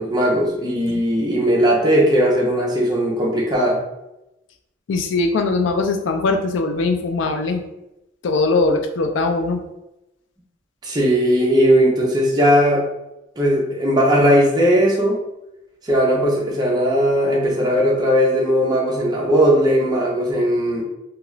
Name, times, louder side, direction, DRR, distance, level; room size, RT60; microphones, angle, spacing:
voice 1, 0.0-3.8 10.8-12.8 13.4-15.2 15.8-20.8, equal, 20° right, -3 dB, 0.6 m, -18 dB
voice 2, 4.9-7.6 8.2-9.6, left 3 dB, 80° left, 5 dB, 0.4 m, -21 dB
2.4 x 2.3 x 3.0 m, 0.91 s
head